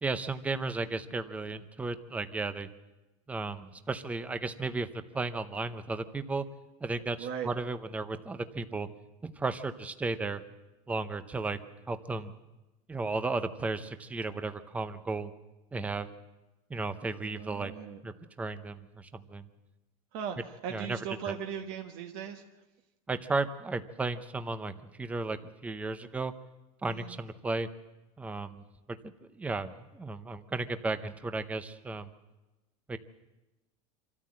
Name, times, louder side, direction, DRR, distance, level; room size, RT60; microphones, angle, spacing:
voice 1, 0.0-2.7 3.3-6.4 6.8-8.9 9.2-10.4 10.9-11.6 11.9-12.3 12.9-15.3 15.7-16.1 16.7-17.7 18.0-19.5 20.7-21.0 21.3-21.4 23.1-26.3 26.8-27.7 28.2-28.6 29.3-32.1 32.9-33.0, right 3 dB, 10° right, 11 dB, 0.7 m, -34 dB
voice 2, 7.2-7.5 17.3-18.0 20.1-22.4 26.9-27.1, right 8 dB, 50° right, 3 dB, 1.3 m, -38 dB
25.5 x 13.5 x 7.5 m, 1.1 s
supercardioid pair, 155°, 18 cm